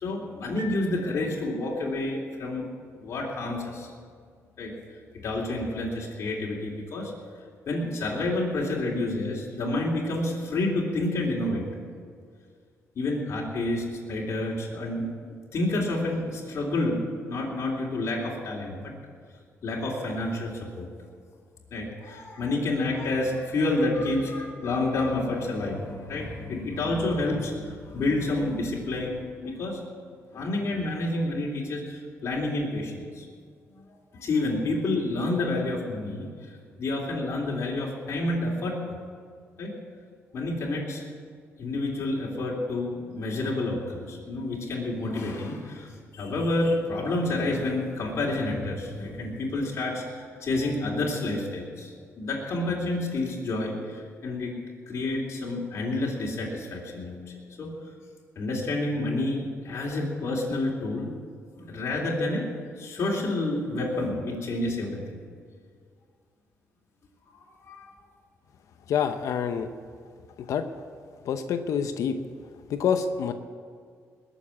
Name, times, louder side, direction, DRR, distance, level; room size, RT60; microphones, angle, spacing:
voice 1, 0.0-2.7 3.0-3.9 4.6-4.7 5.2-7.1 7.7-11.7 12.9-18.9 19.6-20.9 21.7-29.8 30.3-33.3 34.1-36.3 36.8-39.0 39.6-39.7 40.3-41.0 41.6-54.5 54.9-57.2 57.6-57.7 58.3-61.1 61.6-62.5 62.8-65.2 67.6-67.8, left 2 dB, 55° left, -4 dB, 3.5 m, -29 dB
sound 1, 0.6-2.1, left 3 dB, 80° right, 1.5 m, -45 dB
voice 2, 68.9-69.7 70.5-70.7 71.2-72.2 72.7-73.3, left 7 dB, 75° left, 8 dB, 0.8 m, -26 dB
20.5 x 7.1 x 8.4 m, 2.1 s
cardioid pair, 95°, 6 cm